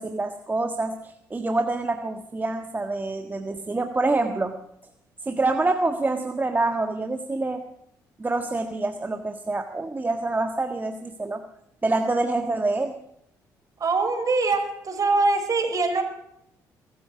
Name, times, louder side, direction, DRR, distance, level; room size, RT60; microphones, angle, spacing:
voice 1, 0.0-4.5 5.2-7.6 8.2-11.4 11.8-13.0, right 2 dB, 25° right, 6 dB, 1.5 m, -26 dB
voice 2, 13.8-16.0, right 3 dB, 45° right, 5 dB, 5.4 m, -23 dB
21.5 x 13.5 x 5.0 m, 0.77 s
supercardioid pair, 60°, 8 cm